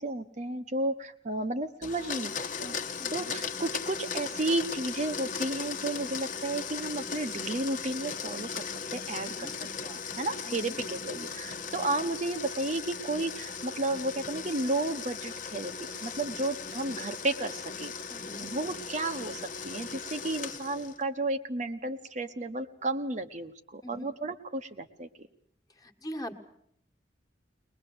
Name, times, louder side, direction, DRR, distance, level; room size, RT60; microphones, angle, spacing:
voice 1, 0.0-2.8 3.1-8.6 8.9-9.5 9.8-17.9 18.4-25.3, right 2 dB, 40° right, 7 dB, 1.1 m, -33 dB
Domestic sounds home sounds, 1.8-21.0, left 6 dB, 45° left, 1.2 m, -38 dB
voice 2, 3.0-3.3 9.3-9.5 10.4-10.8 18.1-18.5 23.8-24.1 25.8-26.3, equal, 20° left, 7 dB, 1.7 m, -42 dB
21.5 x 21.5 x 7.9 m, 0.66 s
head